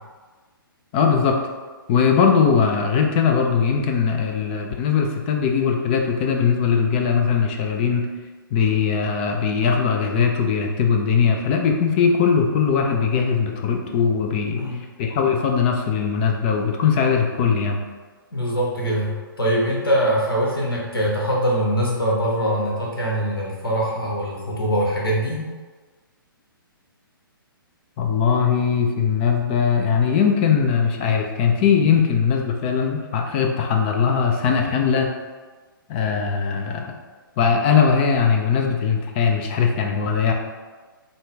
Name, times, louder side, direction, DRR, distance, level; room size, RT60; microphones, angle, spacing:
voice 1, 0.9-1.4 1.9-8.1 8.5-14.6 15.0-17.8 28.0-35.1 35.9-37.0 37.4-40.3, left 6 dB, 25° left, 3 dB, 0.4 m, -20 dB
voice 2, 18.3-25.5, equal, 80° left, -3 dB, 1.3 m, -23 dB
3.8 x 2.3 x 3.7 m, 1.4 s
figure-of-eight pair, 130°, 12 cm